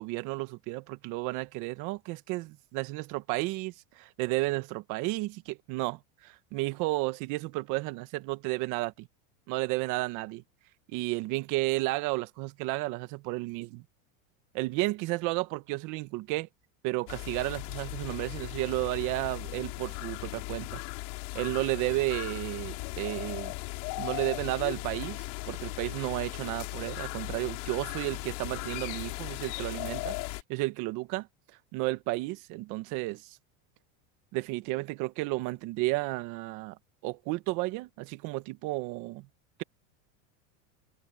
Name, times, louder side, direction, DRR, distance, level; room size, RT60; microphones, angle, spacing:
voice 1, 0.0-9.1 9.5-10.4 10.9-13.8 14.5-16.5 16.8-20.8 21.3-23.5 24.0-30.2 30.5-31.3 31.7-33.4 34.3-36.8 37.0-39.3, right 21 dB, 50° right, 1.3 m, -32 dB
sound 1, 17.1-30.4, left 31 dB, 60° left, 5.3 m, -37 dB
supercardioid pair, 160°, 41 cm